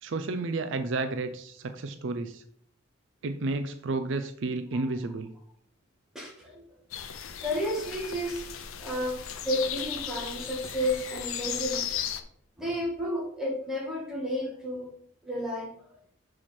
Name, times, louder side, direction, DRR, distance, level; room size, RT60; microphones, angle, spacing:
voice 1, 0.0-2.4 3.2-5.3, right 3 dB, 60° right, 8 dB, 0.4 m, -31 dB
voice 2, 6.1-6.6 7.4-8.4 8.8-9.2 9.4-11.8 12.6-14.9 15.2-15.7, equal, ahead, -3 dB, 1.6 m, -31 dB
sound 1, 6.9-12.2, left 9 dB, 80° left, 0.6 m, -36 dB
6.0 x 4.7 x 4.2 m, 0.63 s
head